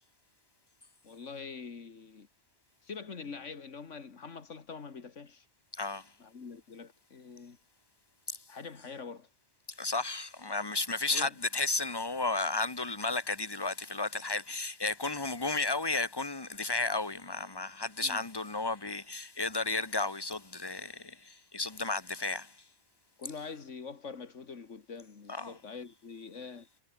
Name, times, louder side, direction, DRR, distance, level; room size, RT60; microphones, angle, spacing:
voice 1, 1.0-2.3 2.8-5.4 6.2-7.6 8.5-9.3 11.1-11.3 18.0-18.2 23.2-26.7, left 5 dB, 85° left, 2.3 m, -44 dB
voice 2, 5.8-6.1 8.3-8.4 9.8-22.6 25.3-25.6, left 3 dB, 20° left, 1.4 m, -33 dB
omnidirectional pair, 1.2 m